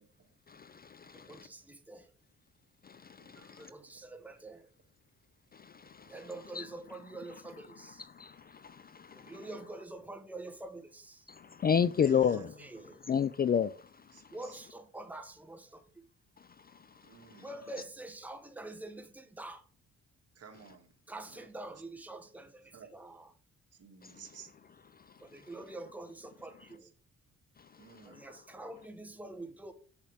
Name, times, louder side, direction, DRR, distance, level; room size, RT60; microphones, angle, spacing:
voice 1, 0.5-1.5 2.8-3.7 5.5-6.3 6.5-6.7 8.1-9.4 11.3-12.5 13.1-13.9 16.4-16.5 17.3-17.4 24.0-24.1 27.9-28.0, left 7 dB, 30° left, 0.4 m, -32 dB
voice 2, 1.1-2.1 3.6-4.7 6.0-8.0 9.1-11.3 12.1-13.0 14.3-16.0 17.4-19.6 21.1-23.3 25.2-26.9 28.0-29.7, right 2 dB, 5° right, 1.1 m, -46 dB
voice 3, 3.2-3.7 11.7-12.5 12.8-12.9 14.1-14.6 17.0-17.5 20.4-20.9 21.3-21.4 22.7-22.9 23.8-24.5 27.8-28.2, right 6 dB, 55° right, 1.8 m, -54 dB
7.4 x 7.1 x 3.5 m
cardioid pair, 90°, 30 cm